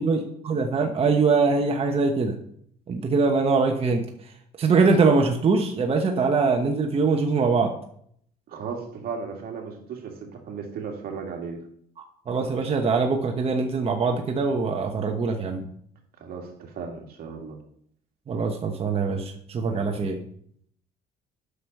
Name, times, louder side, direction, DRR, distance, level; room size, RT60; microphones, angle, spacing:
voice 1, 0.0-2.4 2.9-4.0 4.6-7.7 12.3-15.6 18.3-20.2, right 4 dB, 35° right, 3 dB, 1.1 m, -23 dB
voice 2, 8.5-11.6 16.2-17.6 19.7-20.0, right 5 dB, 60° right, 1 dB, 2.3 m, -36 dB
8.3 x 6.2 x 5.4 m, 0.66 s
cardioid pair, 110°, 17 cm